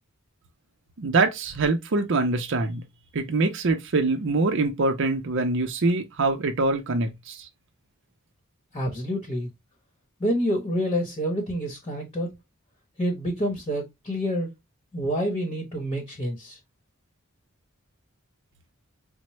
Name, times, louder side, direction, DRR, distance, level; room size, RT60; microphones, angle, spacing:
voice 1, 1.0-2.8 3.1-7.5, right 3 dB, 60° right, 0.6 m, -24 dB
voice 2, 8.7-9.5 10.2-12.3 13.0-14.5 14.9-16.6, equal, 30° left, 0.9 m, -27 dB
4.3 x 2.1 x 2.9 m
head